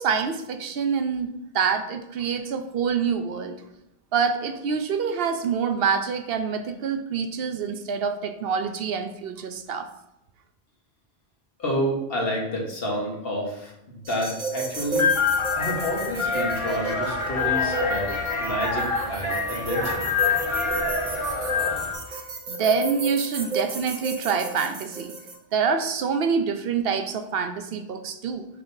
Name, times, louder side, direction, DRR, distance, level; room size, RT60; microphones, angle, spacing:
voice 1, 0.0-3.6 4.1-9.9 21.5-21.6 22.1-25.1 25.5-28.5, right 6 dB, 70° right, 8 dB, 0.8 m, -26 dB
voice 2, 11.6-15.2 15.5-20.3, equal, 70° left, -1 dB, 1.6 m, -29 dB
sound 1, 14.0-25.3, right 3 dB, 50° right, 1.0 m, -33 dB
sound 2, 14.7-21.9, left 5 dB, 30° left, 1.2 m, -26 dB
6.7 x 5.4 x 2.7 m, 0.85 s
omnidirectional pair, 1.0 m